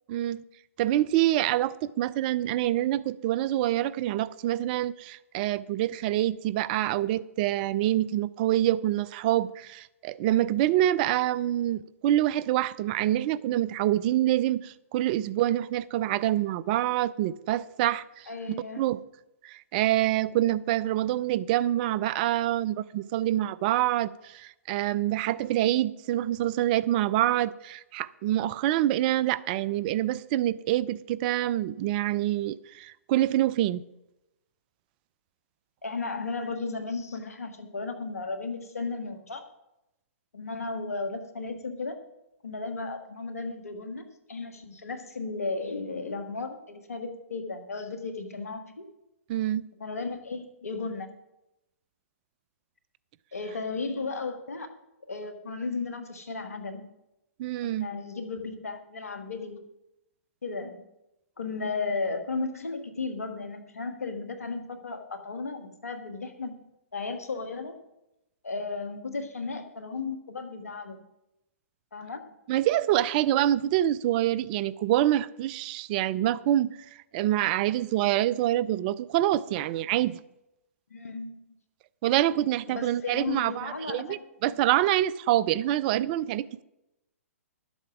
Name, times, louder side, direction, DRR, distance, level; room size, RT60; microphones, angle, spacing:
voice 1, 0.1-0.4 0.8-18.3 18.8-19.0 19.4-33.8 49.3-49.7 57.4-57.9 72.5-80.2 82.0-86.6, right 13 dB, 40° right, 0.4 m, -26 dB
voice 2, 18.3-18.8 35.8-39.4 40.3-42.0 42.4-48.8 49.8-51.1 53.3-54.7 55.1-56.9 57.6-59.6 60.4-60.8 61.4-66.5 66.9-67.7 68.4-71.0 71.9-72.3 80.9-81.4 82.7-84.2 84.5-84.6, left 3 dB, 80° left, 1.6 m, -35 dB
12.0 x 7.9 x 6.0 m
hypercardioid pair, 125°, 8 cm